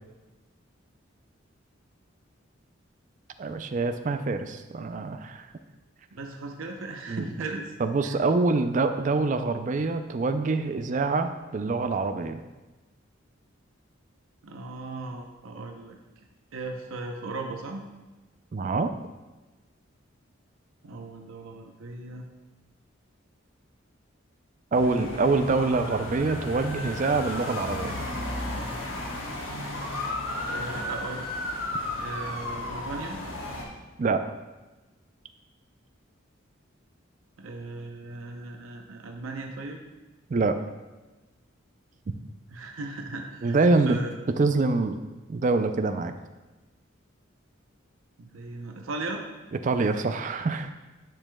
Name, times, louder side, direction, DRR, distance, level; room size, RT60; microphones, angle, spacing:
voice 1, 3.4-5.5 7.1-7.3 7.8-12.4 18.5-18.9 24.7-28.0 34.0-34.2 40.3-40.6 43.4-44.0 44.4-45.0 45.3-46.1 49.6-50.7, right 3 dB, 40° right, 8 dB, 0.3 m, -25 dB
voice 2, 6.1-7.7 8.0-8.2 14.4-16.0 16.5-17.8 20.8-22.2 24.7-25.3 30.5-31.3 32.0-33.2 37.4-39.8 42.5-43.6 43.8-44.2 48.2-49.2, right 2 dB, 85° right, 3 dB, 0.7 m, -37 dB
sound 1, 24.7-33.6, left 1 dB, 75° left, 1.2 m, -34 dB
10.5 x 5.1 x 2.2 m, 1.2 s
head